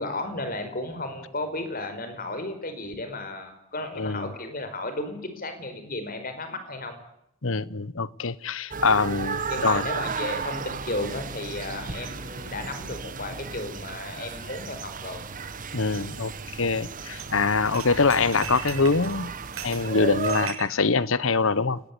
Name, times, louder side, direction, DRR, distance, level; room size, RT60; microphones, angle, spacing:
voice 1, 0.0-7.0 9.5-15.3, left 2 dB, 40° left, 5.0 m, -34 dB
voice 2, 4.0-4.3 7.4-9.9 15.7-19.3 19.6-21.8, left 4 dB, 65° left, 1.0 m, -24 dB
sound 1, 8.7-20.5, right 5 dB, 40° right, 1.4 m, -34 dB
sound 2, 17.1-17.3 17.5-20.7, right 8 dB, 85° right, 5.7 m, -38 dB
30.0 x 19.5 x 8.5 m
head